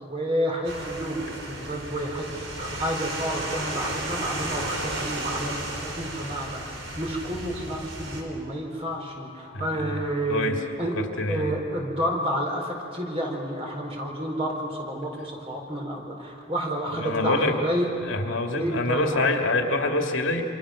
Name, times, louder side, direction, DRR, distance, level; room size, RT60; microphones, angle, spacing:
voice 1, 0.0-6.6 7.0-10.5 10.8-10.9 11.3-18.0 18.6-19.3, equal, 30° right, 0 dB, 4.2 m, -30 dB
sound 1, 0.6-8.2, right 2 dB, 80° right, 4.2 m, -34 dB
voice 2, 9.5-10.0 10.3-10.6 11.2-11.5 16.9-17.6 18.0-20.4, left 2 dB, 80° left, 3 dB, 2.4 m, -25 dB
28.0 x 26.5 x 6.5 m, 2.7 s
head